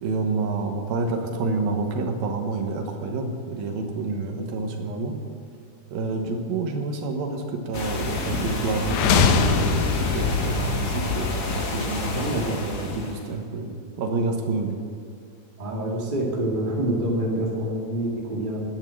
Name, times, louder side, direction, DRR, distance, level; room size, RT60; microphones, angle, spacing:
voice 1, 0.0-5.2 5.9-9.8 10.1-14.8, right 3 dB, 90° right, 4 dB, 3.0 m, -28 dB
sound 1, 7.7-13.3, left 2 dB, 90° left, 0.8 m, -29 dB
sound 2, 8.8-12.8, left 5 dB, 70° left, 2.0 m, -24 dB
voice 2, 12.1-12.5 15.6-18.6, right 1 dB, 20° right, -2 dB, 1.5 m, -26 dB
10.5 x 10.0 x 7.5 m, 2.3 s
omnidirectional pair, 4.1 m